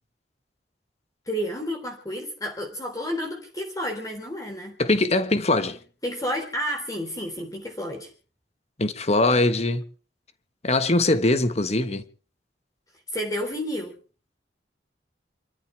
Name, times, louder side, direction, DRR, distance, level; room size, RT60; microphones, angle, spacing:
voice 1, 1.3-4.8 6.0-8.1 13.1-13.9, equal, 20° left, 3.6 m, -31 dB
voice 2, 4.8-5.8 8.8-9.8 10.6-12.0, left 2 dB, 40° left, 1.4 m, -22 dB
28.0 x 14.0 x 3.4 m
head